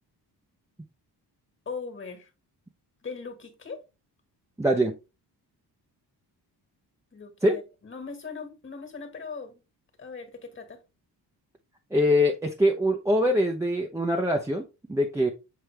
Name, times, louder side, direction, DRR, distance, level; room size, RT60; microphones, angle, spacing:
voice 1, 1.7-2.3 3.0-3.8 7.1-9.6 10.0-10.8, left 5 dB, 30° left, 1.8 m, -39 dB
voice 2, 4.6-5.0 7.4-7.6 11.9-15.3, equal, 5° right, 0.7 m, -23 dB
7.7 x 4.6 x 3.3 m
cardioid pair, 125°, 40 cm